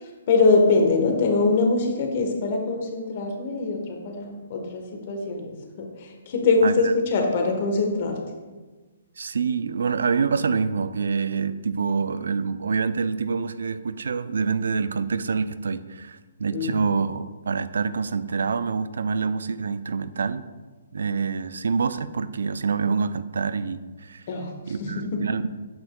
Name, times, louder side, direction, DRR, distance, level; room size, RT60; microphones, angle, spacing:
voice 1, 0.3-8.2 16.5-16.7 24.3-24.5 24.8-25.0, left 3 dB, 50° left, 3 dB, 1.2 m, -23 dB
voice 2, 6.6-6.9 9.2-20.5 20.9-24.2 24.7-25.5, right 5 dB, 75° right, 13 dB, 0.3 m, -26 dB
7.6 x 5.9 x 2.3 m, 1.3 s
hypercardioid pair, 135°, 0 cm